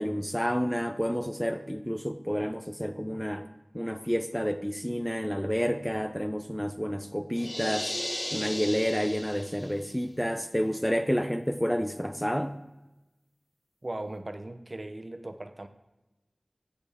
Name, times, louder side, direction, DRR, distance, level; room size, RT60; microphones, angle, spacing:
voice 1, 0.0-3.5 3.7-7.9 8.3-12.6, equal, 5° left, 9 dB, 0.5 m, -29 dB
sound 1, 7.3-9.9, left 1 dB, 30° left, 1.4 m, -35 dB
voice 2, 13.8-15.7, right 1 dB, 45° right, 8 dB, 0.7 m, -38 dB
15.5 x 6.8 x 3.5 m, 1.0 s
wide cardioid pair, 55°, 0 cm